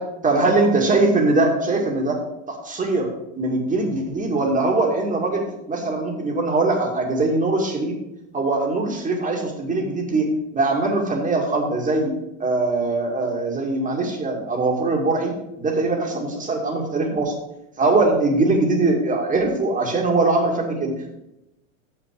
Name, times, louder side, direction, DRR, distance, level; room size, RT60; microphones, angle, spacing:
voice 1, 0.2-2.2 2.5-3.1 3.4-5.4 5.7-7.9 8.3-12.1 12.4-15.3 15.6-17.3 17.8-21.2, right 2 dB, 20° right, 0 dB, 2.2 m, -21 dB
6.8 x 6.0 x 6.2 m, 0.89 s
hypercardioid pair, 110°, 39 cm